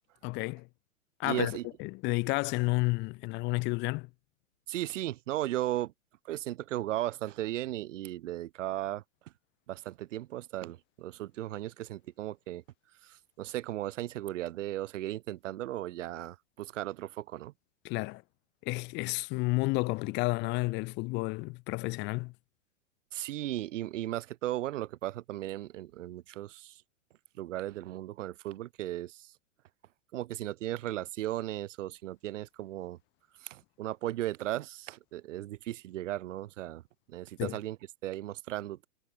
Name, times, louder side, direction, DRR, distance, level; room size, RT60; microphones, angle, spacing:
voice 1, 0.2-0.7 1.2-4.1 17.8-18.2 18.6-22.3 37.4-37.6, left 25 dB, 30° left, 0.6 m, -31 dB
voice 2, 1.2-1.7 4.7-5.9 6.2-9.0 9.7-12.6 13.0-17.5 23.1-26.8 27.4-29.3 30.1-33.0 33.4-36.8 37.1-37.8 38.0-38.9, right 14 dB, 70° right, 0.9 m, -36 dB
hypercardioid pair, 120°, 39 cm